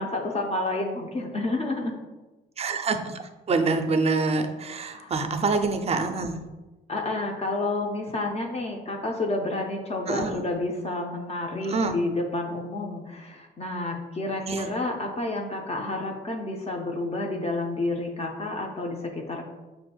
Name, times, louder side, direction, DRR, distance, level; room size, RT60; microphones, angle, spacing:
voice 1, 0.0-2.0 4.9-5.1 6.9-19.5, left 2 dB, 30° left, 1 dB, 0.5 m, -30 dB
voice 2, 2.6-3.2 3.5-6.4 10.1-10.4 11.6-12.0 14.5-14.7, right 3 dB, 30° right, 7 dB, 0.4 m, -26 dB
5.9 x 2.5 x 2.2 m, 1.1 s
cardioid pair, 90°, 20 cm